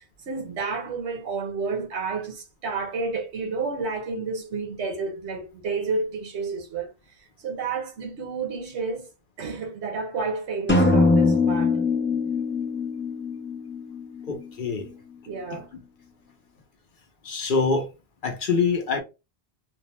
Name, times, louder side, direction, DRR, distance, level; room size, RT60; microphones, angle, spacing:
voice 1, 0.3-6.9 7.4-9.1 9.4-11.7 15.3-15.7, right 4 dB, 85° right, 1.1 m, -30 dB
sound 1, 10.7-14.5, left 3 dB, 15° left, 0.4 m, -22 dB
voice 2, 14.2-14.9 15.5-15.6 17.2-17.9 18.2-19.0, left 4 dB, 55° left, 0.8 m, -25 dB
2.6 x 2.0 x 2.9 m
omnidirectional pair, 1.1 m